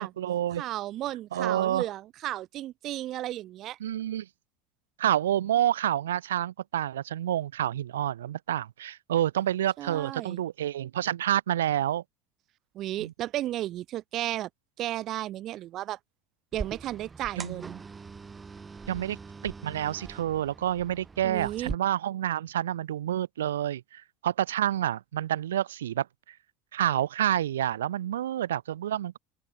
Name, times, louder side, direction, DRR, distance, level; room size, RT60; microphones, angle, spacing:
voice 1, 0.0-0.6 1.3-1.9 3.8-4.3 5.0-12.0 13.0-13.1 17.4-17.6 18.9-19.2 19.4-26.1 26.7-29.2, right 11 dB, 90° right, 1.5 m, -28 dB
voice 2, 0.5-3.8 9.8-10.4 12.7-14.5 14.8-16.0 16.5-17.8 21.2-21.7, right 14 dB, 55° right, 2.9 m, -34 dB
sound 1, 16.5-21.8, right 4 dB, 20° right, 5.8 m, -42 dB
open air
hypercardioid pair, 85°, 0 cm